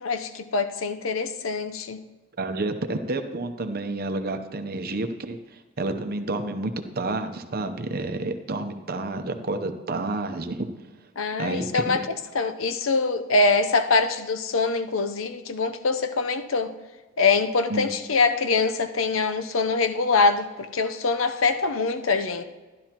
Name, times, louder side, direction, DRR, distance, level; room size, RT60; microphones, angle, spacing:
voice 1, 0.0-2.0 11.2-12.0 12.3-16.7 17.2-22.4, left 4 dB, 90° left, 9 dB, 0.7 m, -24 dB
voice 2, 2.4-5.4 5.8-10.7 11.4-12.0 17.7-17.9, right 2 dB, 50° right, 7 dB, 0.8 m, -29 dB
12.5 x 11.5 x 3.0 m, 1.2 s
head